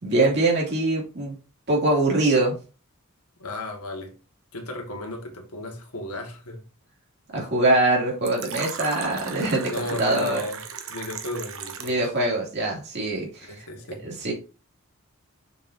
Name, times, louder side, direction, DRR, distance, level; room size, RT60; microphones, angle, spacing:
voice 1, 0.0-1.4 1.7-2.6 7.3-9.7 10.0-10.4 11.8-13.6 14.0-14.3, right 2 dB, 50° right, 2.7 m, -23 dB
voice 2, 3.4-4.1 4.5-6.6 9.7-10.6 10.9-12.0 13.4-14.0, left 1 dB, 90° left, 1.8 m, -34 dB
Fill (with liquid), 8.3-12.1, right 6 dB, 65° right, 1.0 m, -36 dB
6.7 x 5.8 x 2.7 m
head